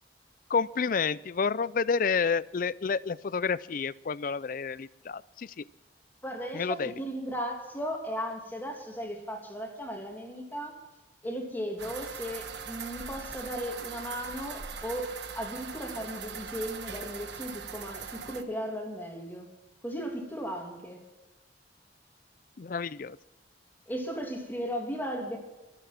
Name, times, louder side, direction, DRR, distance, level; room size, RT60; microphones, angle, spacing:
voice 1, 0.5-5.6 6.5-6.9 22.6-23.2, left 5 dB, 50° left, 20 dB, 0.4 m, -29 dB
voice 2, 6.2-10.8 11.2-19.5 19.8-21.0 23.9-25.4, equal, 10° left, 2 dB, 2.8 m, -36 dB
sound 1, 11.8-18.4, right 6 dB, 80° right, 1.3 m, -41 dB
24.0 x 8.3 x 6.0 m, 1.1 s
head